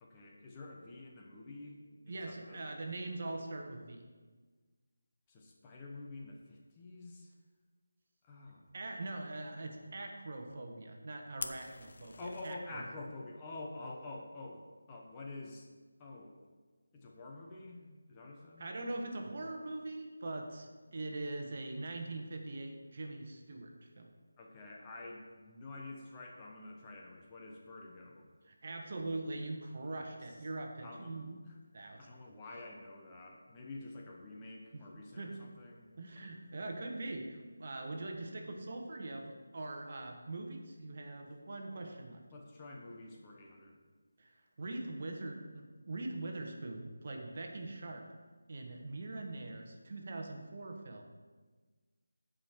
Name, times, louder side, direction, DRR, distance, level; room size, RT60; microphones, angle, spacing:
voice 1, 0.0-2.6 5.3-7.3 8.2-8.7 12.2-15.7 16.0-16.4 16.9-18.7 24.4-28.3 29.8-30.4 30.8-31.1 31.5-36.3 41.2-41.3 42.3-43.8, left 2 dB, 15° left, -1 dB, 1.0 m, -48 dB
voice 2, 2.0-4.1 8.7-12.8 18.6-24.1 28.5-31.4 31.7-32.2 34.7-34.8 35.1-35.4 36.0-42.2 44.2-48.1 48.5-51.1, right 2 dB, 45° right, 3 dB, 1.3 m, -42 dB
Fire, 11.4-12.5, left 3 dB, 55° left, 0.8 m, -44 dB
15.0 x 5.1 x 4.5 m, 1.4 s
figure-of-eight pair, 165°, 0 cm